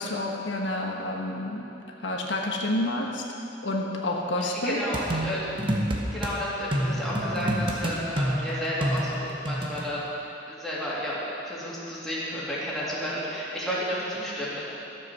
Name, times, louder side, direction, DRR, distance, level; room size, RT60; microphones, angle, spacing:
voice 1, 0.0-1.7 2.0-3.2 3.6-4.8, left 1 dB, 80° left, 0 dB, 1.2 m, -29 dB
voice 2, 4.4-5.4 6.1-14.6, equal, ahead, -9 dB, 2.6 m, -32 dB
sound 1, 4.9-6.3 6.7-9.8, equal, 25° right, 1.0 m, -28 dB
12.5 x 7.6 x 6.2 m, 2.9 s
head